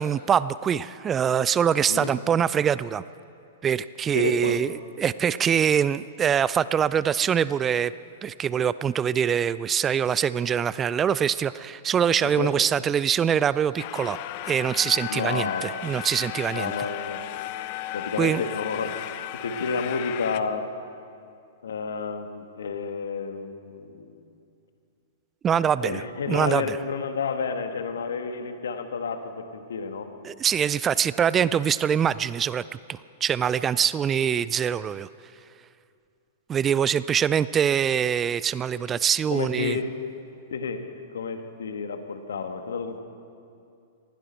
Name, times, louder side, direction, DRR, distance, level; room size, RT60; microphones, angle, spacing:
voice 1, 0.0-3.0 3.6-7.9 8.2-14.2 14.5-16.7 18.2-18.4 25.4-26.0 26.3-26.8 30.2-35.1 36.5-39.8, right 8 dB, 20° right, 17 dB, 0.3 m, -24 dB
voice 2, 4.1-4.6 12.2-12.5 15.1-15.7 16.5-17.2 17.9-20.6 21.6-24.3 25.8-30.1 39.3-39.9 40.5-40.8 41.1-43.0, left 5 dB, 75° left, 7 dB, 1.4 m, -30 dB
sound 1, 13.8-20.4, left 13 dB, 50° left, 0.7 m, -35 dB
20.0 x 16.0 x 4.4 m, 2.5 s
hypercardioid pair, 110°, 0 cm